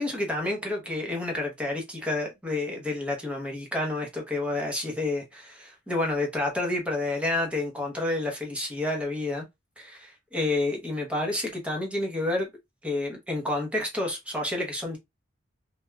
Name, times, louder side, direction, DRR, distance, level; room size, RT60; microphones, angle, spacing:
voice 1, 0.0-9.5 9.8-12.5 12.8-15.0, left 2 dB, 5° right, 0.8 m, -29 dB
3.1 x 2.2 x 2.2 m
head